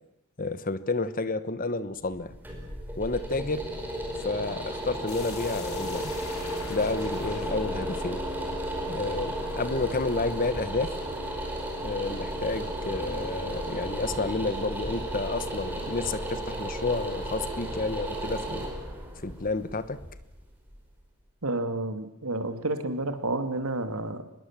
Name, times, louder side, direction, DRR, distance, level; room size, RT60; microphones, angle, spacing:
voice 1, 0.4-2.3 3.0-3.7 4.2-6.1 6.7-8.3 8.9-11.0 11.8-18.7 19.2-20.0, left 3 dB, 40° left, 14 dB, 1.2 m, -30 dB
sound 1, 2.0-21.0, right 1 dB, 10° right, 5.1 m, -34 dB
sound 2, 5.1-9.8, left 5 dB, 85° left, 4.5 m, -45 dB
voice 2, 21.4-24.2, right 2 dB, 90° right, 8 dB, 2.6 m, -30 dB
25.0 x 21.0 x 7.5 m, 0.86 s
head